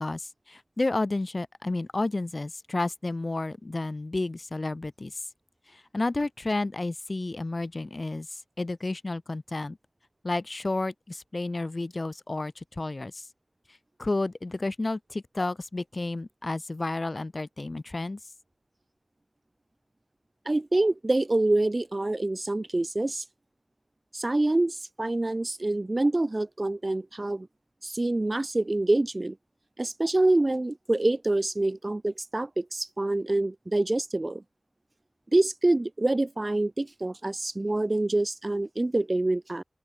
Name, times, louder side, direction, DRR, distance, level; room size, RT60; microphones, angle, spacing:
voice 1, 0.0-5.2 5.7-9.8 10.2-13.3 14.0-18.2, left 2 dB, 55° left, 2.8 m, -31 dB
voice 2, 20.5-23.2 24.1-27.5 27.8-29.4 29.8-34.4 35.3-39.6, right 2 dB, 45° right, 0.4 m, -26 dB
open air
wide cardioid pair, 55°, 0 cm